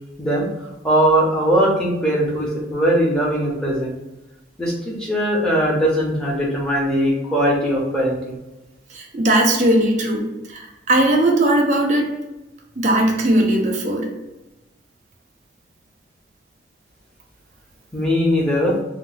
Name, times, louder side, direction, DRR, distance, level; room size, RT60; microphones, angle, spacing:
voice 1, 0.2-0.5 0.8-3.9 4.6-8.4 17.9-18.8, equal, 5° left, -4 dB, 0.7 m, -20 dB
voice 2, 8.9-12.1 12.8-14.1, right 1 dB, 40° right, 0 dB, 0.6 m, -18 dB
2.9 x 2.1 x 3.8 m, 1.0 s
head